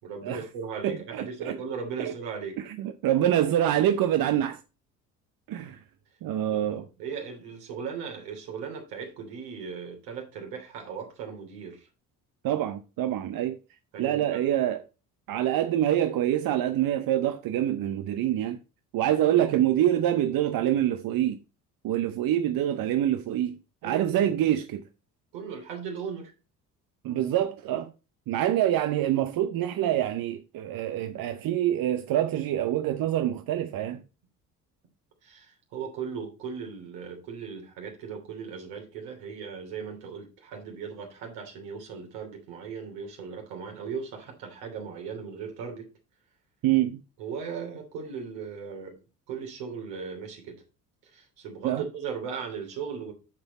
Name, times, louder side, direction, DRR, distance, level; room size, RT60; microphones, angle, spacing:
voice 1, 0.0-2.6 6.5-11.9 13.9-14.4 23.8-24.3 25.3-26.3 35.2-45.9 47.2-48.9 49.3-50.6 51.0-53.1, right 6 dB, 70° right, 3.1 m, -37 dB
voice 2, 0.8-1.6 2.0-2.1 2.6-4.6 5.5-5.8 6.2-6.8 12.4-13.6 14.0-14.8 15.3-18.6 18.9-21.4 21.8-24.8 27.0-27.9 28.3-34.0 46.6-47.0 51.6-51.8, right 12 dB, 50° right, 0.8 m, -26 dB
7.5 x 7.1 x 4.2 m
hypercardioid pair, 55°, 46 cm